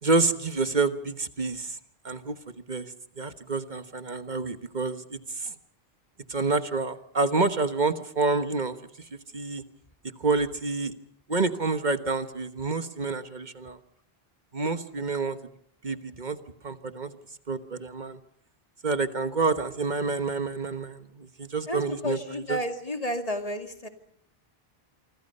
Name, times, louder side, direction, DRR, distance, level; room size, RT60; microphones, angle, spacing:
voice 1, 0.0-1.8 2.0-2.4 2.7-2.9 3.2-5.5 6.3-8.7 9.3-9.6 10.2-10.9 11.3-13.8 14.5-15.4 15.8-16.4 16.6-17.1 17.5-18.2 18.8-22.6, right 3 dB, 45° right, 10 dB, 1.4 m, -28 dB
voice 2, 21.7-23.9, left 1 dB, 35° left, 6 dB, 2.4 m, -31 dB
27.0 x 25.0 x 5.5 m, 0.66 s
omnidirectional pair, 1.0 m